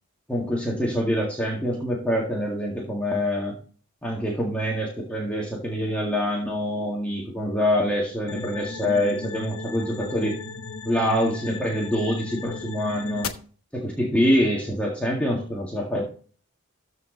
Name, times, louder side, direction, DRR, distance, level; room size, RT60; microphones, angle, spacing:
voice 1, 0.3-3.6 4.0-10.4 10.9-13.3 13.7-16.0, equal, 5° left, -3 dB, 1.9 m, -25 dB
sound 1, 8.3-13.3, left 4 dB, 80° left, 1.1 m, -35 dB
14.0 x 4.7 x 3.9 m, 0.40 s
head